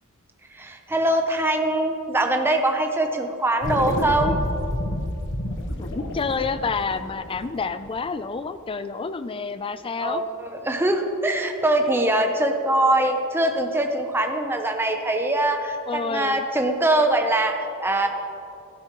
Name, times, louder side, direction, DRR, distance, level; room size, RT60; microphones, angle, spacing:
voice 1, 0.5-4.4 10.0-18.1, right 1 dB, 10° right, 4 dB, 0.6 m, -23 dB
sound 1, 3.6-8.3, left 1 dB, 60° left, 1.0 m, -29 dB
voice 2, 5.8-10.2 15.9-16.5, left 4 dB, 25° left, 12 dB, 0.3 m, -29 dB
15.0 x 12.5 x 3.0 m, 2.8 s
head